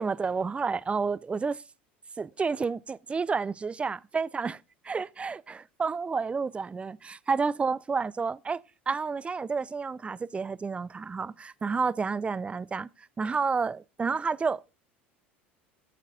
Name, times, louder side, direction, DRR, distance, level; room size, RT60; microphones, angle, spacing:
voice 1, 0.0-1.6 2.2-4.6 4.8-8.6 8.9-12.9 13.2-14.6, right 5 dB, 20° right, 0.4 m, -30 dB
14.0 x 7.3 x 2.4 m
hypercardioid pair, 80°, 6 cm